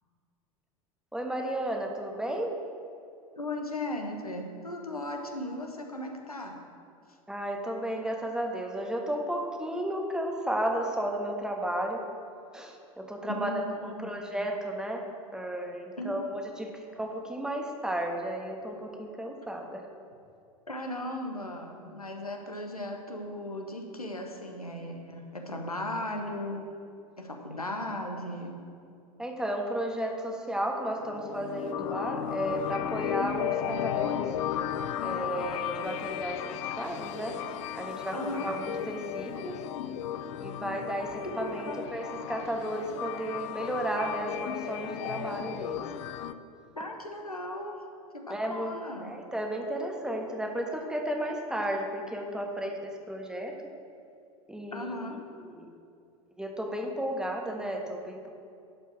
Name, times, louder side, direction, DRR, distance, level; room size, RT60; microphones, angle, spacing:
voice 1, 1.1-2.6 7.3-12.0 12.5-15.0 15.3-19.9 29.2-34.4 35.0-37.4 37.8-39.6 40.4-45.9 48.3-48.7 49.0-53.5 54.5-55.7 56.4-58.3, right 1 dB, 5° right, 1 dB, 1.4 m, -33 dB
voice 2, 3.4-6.6 13.3-14.2 16.0-16.3 20.7-26.6 27.2-28.5 38.1-38.5 41.3-41.9 46.7-47.8 48.1-49.1 54.7-55.2, left 1 dB, 90° left, 2 dB, 1.1 m, -37 dB
sound 1, 30.9-46.3, left 10 dB, 55° left, 0.5 m, -35 dB
11.0 x 5.3 x 6.3 m, 2.5 s
figure-of-eight pair, 80°, 19 cm